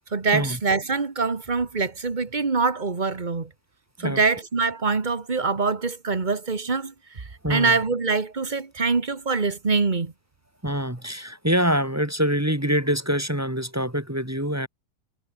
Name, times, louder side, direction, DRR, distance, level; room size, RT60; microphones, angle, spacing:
voice 1, 0.1-3.5 4.0-10.1, right 4 dB, 35° right, 1.7 m, -24 dB
voice 2, 7.4-7.7 10.6-14.7, equal, 10° right, 2.3 m, -25 dB
omnidirectional pair, 1.3 m